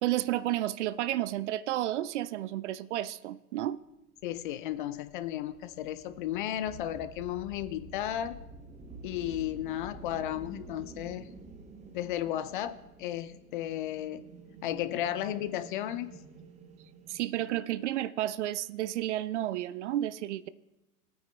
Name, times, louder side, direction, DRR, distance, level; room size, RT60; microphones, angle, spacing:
voice 1, 0.0-3.8 17.1-20.5, right 13 dB, 55° right, 0.5 m, -31 dB
voice 2, 4.2-8.4 9.0-11.3 11.9-14.2 14.6-16.1, left 12 dB, 40° left, 0.4 m, -34 dB
sound 1, 4.2-17.6, right 4 dB, 15° right, 0.8 m, -49 dB
20.0 x 9.2 x 2.2 m
figure-of-eight pair, 100°, 44 cm